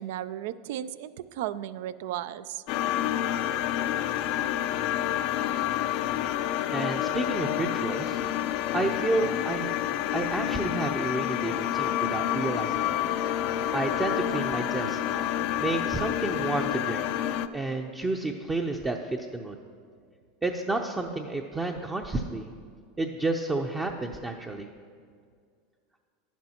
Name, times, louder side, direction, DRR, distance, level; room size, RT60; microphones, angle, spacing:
voice 1, 0.0-2.6, right 12 dB, 70° right, 16 dB, 0.3 m, -35 dB
sound 1, 2.7-17.5, left 12 dB, 60° left, 0.4 m, -29 dB
voice 2, 6.7-8.2 8.7-9.8 10.1-13.0 13.7-15.0 15.6-17.1 17.5-19.6 20.4-22.5 23.0-24.7, right 2 dB, 15° right, 2 dB, 0.6 m, -30 dB
Wind instrument woodwind instrument, 11.4-15.5, left 6 dB, 20° left, 0.6 m, -42 dB
11.0 x 10.5 x 2.9 m, 2.1 s
hypercardioid pair, 110°, 0 cm